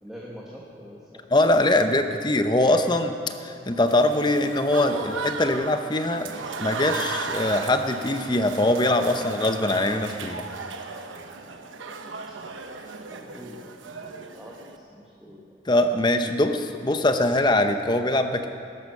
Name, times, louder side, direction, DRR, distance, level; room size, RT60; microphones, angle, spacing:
voice 1, 0.0-1.2 13.1-15.6, equal, 5° right, -4 dB, 1.4 m, -44 dB
voice 2, 1.3-3.1 3.4-6.3 6.6-10.5 15.7-18.5, left 1 dB, 25° left, 7 dB, 0.8 m, -22 dB
Applause / Crowd, 3.9-14.8, right 4 dB, 85° right, 1.1 m, -35 dB
19.5 x 11.0 x 6.6 m, 2.6 s
head